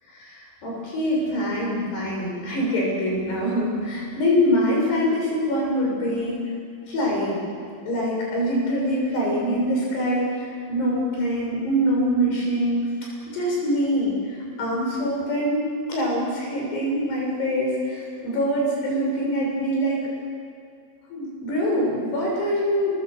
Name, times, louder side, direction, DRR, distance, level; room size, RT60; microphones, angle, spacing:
voice 1, 0.1-6.4 6.9-7.4 7.8-20.0 21.1-23.0, equal, 80° left, -3 dB, 8.7 m, -24 dB
28.5 x 21.0 x 8.1 m, 2.3 s
omnidirectional pair, 4.7 m